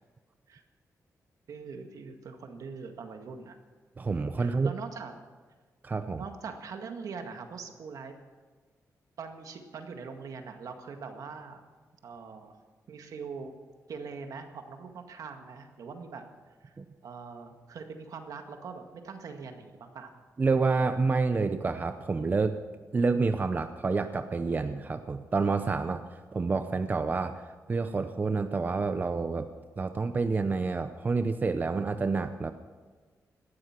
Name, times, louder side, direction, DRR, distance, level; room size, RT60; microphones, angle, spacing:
voice 1, 1.5-3.6 4.4-5.2 6.1-8.2 9.2-11.6 12.0-12.6 12.9-13.5 13.9-16.2 16.6-16.7 17.0-20.1, right 5 dB, 70° right, 5 dB, 1.9 m, -42 dB
voice 2, 4.0-4.7 5.8-6.2 16.8-16.9 20.4-22.6 22.9-26.0 26.3-29.5 29.8-32.5, right 4 dB, 30° right, 9 dB, 0.6 m, -28 dB
18.0 x 12.5 x 6.0 m, 1.4 s
wide cardioid pair, 140°, 6 cm